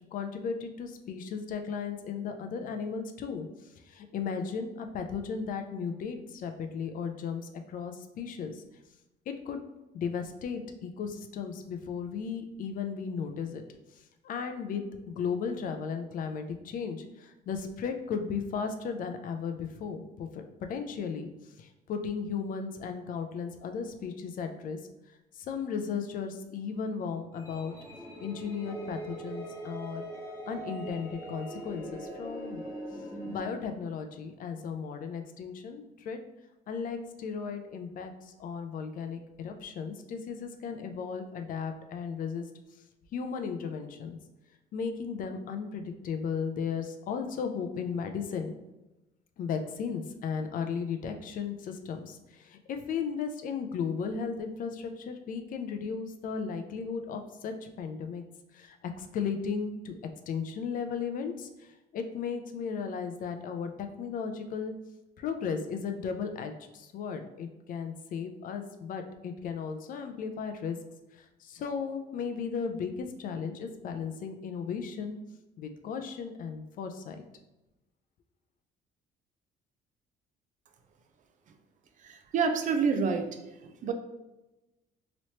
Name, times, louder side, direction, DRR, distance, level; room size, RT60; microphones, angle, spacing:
voice 1, 0.1-8.6 9.3-9.6 9.9-13.6 13.9-20.4 20.7-24.8 25.3-27.7 28.2-30.0 30.4-32.6 33.3-36.2 36.7-42.5 43.1-44.2 44.7-48.6 49.4-58.2 58.5-59.9 60.3-64.7 65.2-70.8 71.1-75.2 75.6-77.2, left 6 dB, 55° left, 6 dB, 0.4 m, -35 dB
sound 1, 27.3-33.4, right 1 dB, 15° left, 1.1 m, -41 dB
voice 2, 82.0-83.3 83.6-83.9, right 5 dB, 50° right, 6 dB, 0.5 m, -28 dB
3.0 x 3.0 x 2.8 m, 1.0 s
cardioid pair, 110°, 17 cm